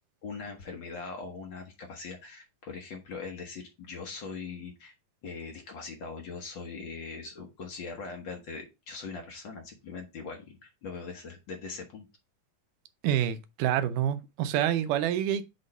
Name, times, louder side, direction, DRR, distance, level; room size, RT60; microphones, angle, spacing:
voice 1, 0.2-4.9 5.2-12.1, left 4 dB, 70° left, 1.1 m, -41 dB
voice 2, 13.0-15.4, right 10 dB, 80° right, 2.2 m, -27 dB
6.4 x 3.0 x 5.3 m
omnidirectional pair, 3.8 m